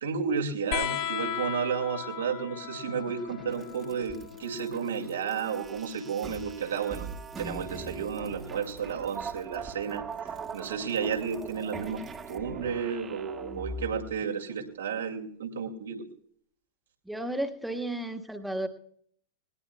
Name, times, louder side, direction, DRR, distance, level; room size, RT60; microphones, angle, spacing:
voice 1, 0.0-7.1 7.4-10.0 10.5-12.0 12.3-16.0, right 6 dB, 65° right, 3 dB, 2.3 m, -32 dB
sound 1, 0.7-7.8 9.2-10.0 11.3-11.4, left 10 dB, 45° left, 1.6 m, -38 dB
sound 2, 2.9-14.1, right 4 dB, 20° right, 1.5 m, -41 dB
voice 2, 17.0-18.7, right 1 dB, 5° right, 6 dB, 1.6 m, -33 dB
19.5 x 19.5 x 2.3 m, 0.62 s
figure-of-eight pair, 90°, 0 cm